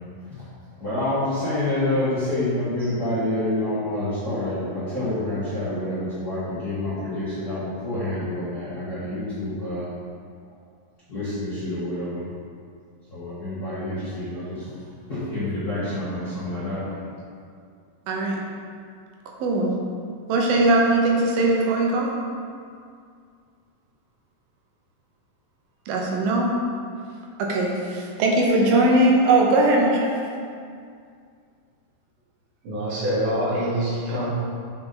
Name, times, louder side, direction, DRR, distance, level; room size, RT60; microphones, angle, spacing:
voice 1, 0.8-9.9 11.1-12.2 13.1-14.6 15.1-16.9, left 1 dB, 45° left, -13 dB, 1.3 m, -27 dB
voice 2, 18.1-18.4 19.4-19.7 20.3-22.1 25.9-26.5 27.4-30.1, right 2 dB, 90° right, -1 dB, 2.8 m, -20 dB
voice 3, 32.6-34.3, equal, 65° right, -7 dB, 3.0 m, -25 dB
7.2 x 5.5 x 3.9 m, 2.3 s
omnidirectional pair, 4.1 m